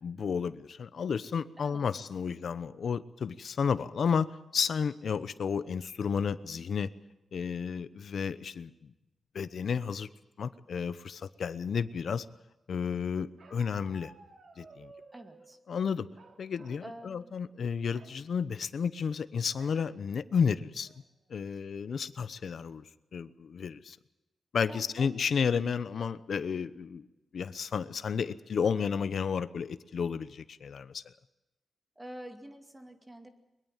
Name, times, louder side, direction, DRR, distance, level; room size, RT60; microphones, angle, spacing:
voice 1, 0.0-6.9 7.3-8.9 9.3-10.1 10.4-12.3 12.7-14.1 14.6-14.9 15.7-16.1 16.4-20.9 21.3-22.8 23.1-24.0 24.5-27.1 27.3-31.1, left 6 dB, 55° left, 14 dB, 0.9 m, -32 dB
Bark, 13.4-15.5 16.1-16.9 17.2-17.4 17.8-18.2 19.6-19.9 20.4-20.5 20.8-21.3, right 4 dB, 55° right, 2.9 m, -55 dB
voice 2, 15.1-15.6 16.8-17.4 24.7-25.1 32.0-33.3, right 1 dB, 10° right, 6 dB, 2.3 m, -47 dB
22.5 x 22.0 x 7.4 m, 0.99 s
wide cardioid pair, 160°, 0 cm